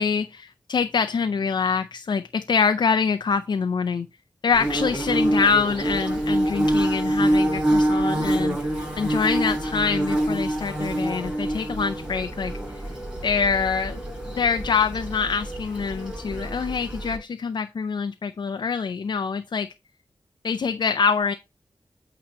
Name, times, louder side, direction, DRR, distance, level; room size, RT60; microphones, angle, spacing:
voice 1, 0.0-4.1 4.4-8.6 9.0-12.8 13.2-19.7 20.4-21.3, left 5 dB, 70° left, 0.5 m, -25 dB
Bird / Buzz, 4.5-17.2, right 1 dB, 15° right, 4.9 m, -26 dB
8.7 x 3.0 x 5.4 m
wide cardioid pair, 70°, 8 cm